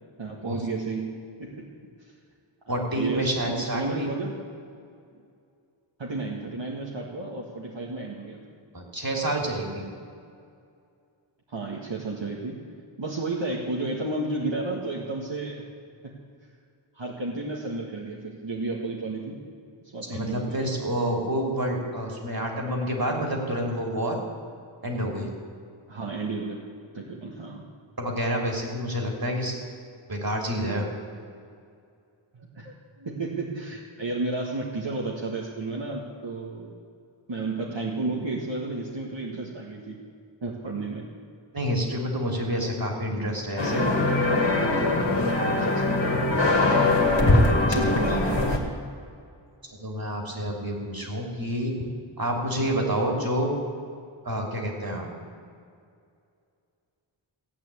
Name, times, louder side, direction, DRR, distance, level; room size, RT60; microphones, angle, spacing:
voice 1, 0.2-1.7 2.6-4.4 6.0-8.4 11.5-12.6 13.0-15.6 16.0-16.1 16.9-19.4 19.8-20.7 25.9-26.6 26.9-27.6 32.3-36.7 37.3-40.0 40.4-41.1 45.4-46.0 47.7-48.7, right 2 dB, 65° right, -3 dB, 1.8 m, -32 dB
voice 2, 2.7-4.1 8.7-9.9 20.0-24.2 24.8-25.3 28.0-29.6 30.1-30.9 41.5-43.9 49.6-51.9 52.2-53.5 54.2-55.1, equal, 45° right, 0 dB, 3.1 m, -28 dB
sound 1, 43.6-48.6, left 2 dB, 60° left, 2.3 m, -22 dB
16.5 x 8.9 x 8.4 m, 2.4 s
wide cardioid pair, 65°, 49 cm